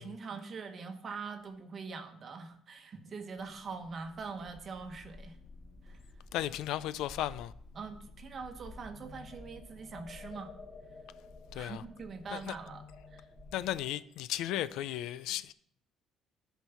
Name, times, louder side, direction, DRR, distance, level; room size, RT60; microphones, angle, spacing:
voice 1, 0.0-5.4 5.9-6.0 7.7-10.5 11.5-12.8 13.1-13.2, right 4 dB, 35° right, 1.0 m, -43 dB
sound 1, 3.4-13.8, left 2 dB, 15° left, 1.1 m, -54 dB
voice 2, 6.3-7.5 11.5-11.8 12.3-12.5 13.5-15.5, left 13 dB, 80° left, 0.4 m, -35 dB
sound 2, 8.7-14.0, left 4 dB, 50° left, 1.8 m, -53 dB
11.5 x 4.6 x 5.6 m
cardioid pair, 145°, 0 cm